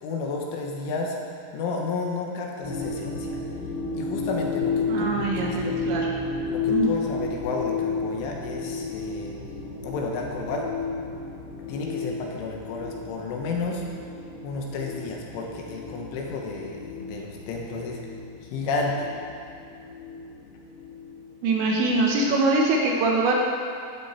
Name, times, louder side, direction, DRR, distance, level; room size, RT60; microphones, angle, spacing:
voice 1, 0.0-1.2 1.5-3.4 3.9-5.8 6.5-9.3 9.8-10.7 11.7-13.8 14.4-18.0 18.5-19.1, left 3 dB, 75° left, -1 dB, 3.7 m, -32 dB
sound 1, 2.6-22.1, left 4 dB, 50° left, 3.6 m, -32 dB
voice 2, 4.9-6.1 6.7-6.9 21.4-23.3, right 3 dB, 70° right, -1 dB, 3.1 m, -23 dB
13.5 x 11.5 x 4.4 m, 2.4 s
omnidirectional pair, 5.8 m